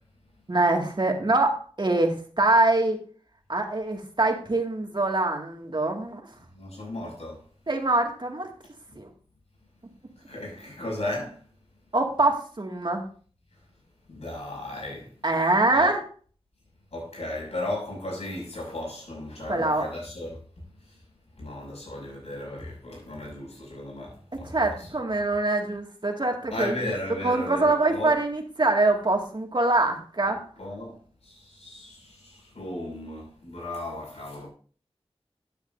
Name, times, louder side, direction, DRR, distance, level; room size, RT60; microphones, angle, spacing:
voice 1, 0.5-3.0 3.5-6.2 7.7-8.5 9.0-9.1 11.9-13.0 15.2-16.0 19.5-19.9 24.5-26.9 27.2-30.4, right 2 dB, 45° right, 2.1 m, -24 dB
voice 2, 6.5-7.4 8.9-9.0 10.3-11.4 14.1-15.1 15.7-15.9 16.9-20.4 21.4-24.9 26.5-28.1 30.2-31.0 31.2-34.5, left 1 dB, 80° left, 6.2 m, -35 dB
13.0 x 9.4 x 2.7 m
wide cardioid pair, 55°, 11 cm